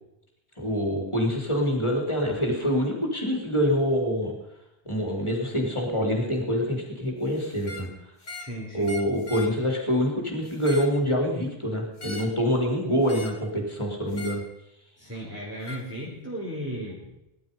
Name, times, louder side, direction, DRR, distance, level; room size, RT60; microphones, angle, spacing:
voice 1, 0.6-4.3 4.9-7.9 8.7-14.4, equal, 25° left, 0 dB, 3.9 m, -26 dB
sound 1, 7.6-7.9 8.2-8.6 8.8-9.5 10.4-11.0 12.0-12.4 13.1-13.4 14.1-14.5 15.7-15.8, left 2 dB, 45° left, 1.8 m, -40 dB
voice 2, 8.3-8.9 15.0-17.2, equal, 15° right, -6 dB, 4.0 m, -36 dB
20.5 x 11.5 x 5.5 m, 0.90 s
omnidirectional pair, 1.1 m